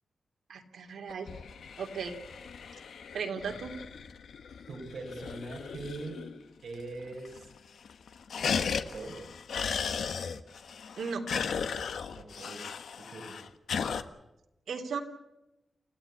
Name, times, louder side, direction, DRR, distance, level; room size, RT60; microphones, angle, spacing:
voice 1, 0.5-1.3 1.8-2.2 3.1-3.7 11.0-11.2 14.7-15.0, right 5 dB, 80° right, 3 dB, 3.1 m, -36 dB
sound 1, 1.1-6.4 6.7-6.8 7.1-7.6 7.9-14.0, left 6 dB, 90° left, 1.2 m, -36 dB
voice 2, 4.7-6.2 6.6-7.5 8.5-9.2 12.2-12.7 13.0-13.4, right 2 dB, 60° right, 0 dB, 5.2 m, -42 dB
28.5 x 15.5 x 8.4 m, 0.95 s
wide cardioid pair, 175°, 0 cm